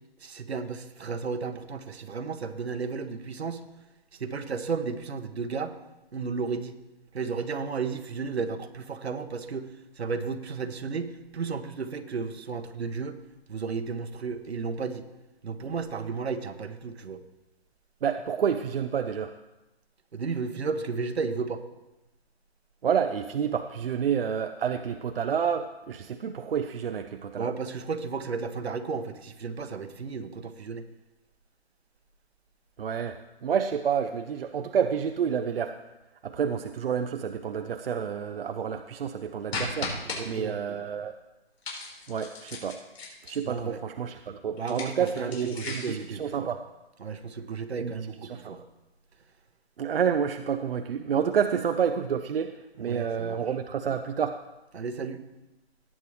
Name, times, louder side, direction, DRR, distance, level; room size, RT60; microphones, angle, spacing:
voice 1, 0.2-3.7 4.2-5.8 6.1-6.7 7.1-9.7 10.0-13.2 13.5-15.0 15.4-17.2 20.1-21.6 27.4-30.8 40.0-40.6 43.4-43.8 44.6-46.5 47.0-48.6 52.8-53.4 54.7-55.2, right 5 dB, 85° right, 8 dB, 1.2 m, -33 dB
voice 2, 18.0-19.3 22.8-27.5 32.8-35.7 36.2-41.1 42.1-42.8 43.3-46.6 47.8-47.9 48.3-48.4 49.8-54.4, right 7 dB, 65° right, 7 dB, 0.7 m, -29 dB
sound 1, 39.5-40.2 41.6-43.5 44.6-46.0, left 3 dB, 80° left, 4.8 m, -36 dB
18.0 x 8.6 x 3.3 m, 0.98 s
hypercardioid pair, 160°, 31 cm